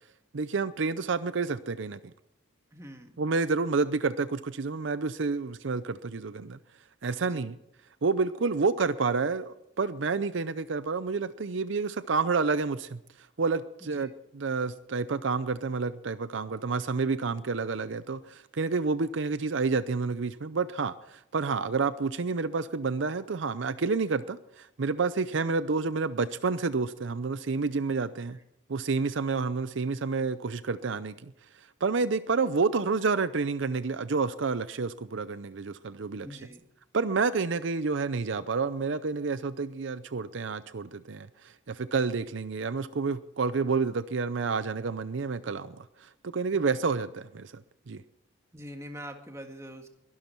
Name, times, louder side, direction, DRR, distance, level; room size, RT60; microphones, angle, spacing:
voice 1, 0.3-2.1 3.2-6.6 7.0-7.6 8.0-13.0 13.4-28.4 28.7-31.3 31.8-36.4 36.9-47.6 47.9-48.0, right 4 dB, 70° right, 14 dB, 0.6 m, -29 dB
voice 2, 2.7-3.1 7.2-7.5 13.8-14.1 36.2-36.6 46.5-46.8 48.5-49.9, equal, 15° right, 4 dB, 1.8 m, -44 dB
22.0 x 12.0 x 4.5 m, 0.82 s
head